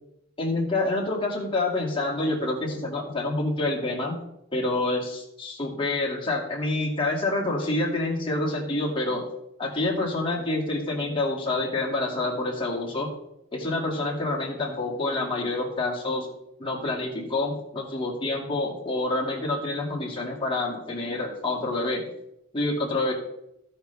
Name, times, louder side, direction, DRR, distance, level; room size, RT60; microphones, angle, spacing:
voice 1, 0.4-4.2 4.5-9.3 9.6-13.1 13.5-16.3 16.6-22.1 22.5-23.1, left 2 dB, 25° left, -2 dB, 2.2 m, -27 dB
16.0 x 5.5 x 3.4 m, 0.83 s
head